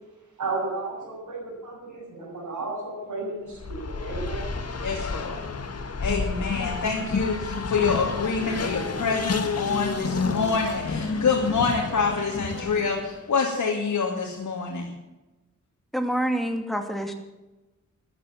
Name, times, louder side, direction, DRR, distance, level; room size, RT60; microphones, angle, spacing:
voice 1, 0.4-4.6, right 3 dB, 90° right, -8 dB, 7.7 m, -33 dB
Race car auto racing, 3.5-13.2, left 4 dB, 55° left, 1.7 m, -30 dB
voice 2, 4.8-5.4 6.0-14.9, left 5 dB, 90° left, -1 dB, 2.7 m, -26 dB
voice 3, 15.9-17.1, right 1 dB, ahead, 5 dB, 2.5 m, -27 dB
14.5 x 12.0 x 7.5 m, 1.1 s
wide cardioid pair, 120°, 30 cm